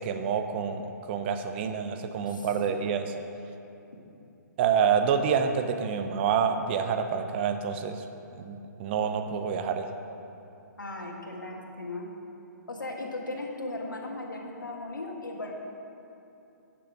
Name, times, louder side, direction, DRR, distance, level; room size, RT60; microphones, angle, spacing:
voice 1, 0.0-3.1 4.6-8.0 8.3-9.9, right 7 dB, 35° right, 8 dB, 0.6 m, -27 dB
voice 2, 2.3-2.6 3.9-4.0 10.8-12.1 12.7-15.5, left 2 dB, 90° left, 0 dB, 1.5 m, -37 dB
10.0 x 6.9 x 4.7 m, 2.8 s
hypercardioid pair, 140°, 10 cm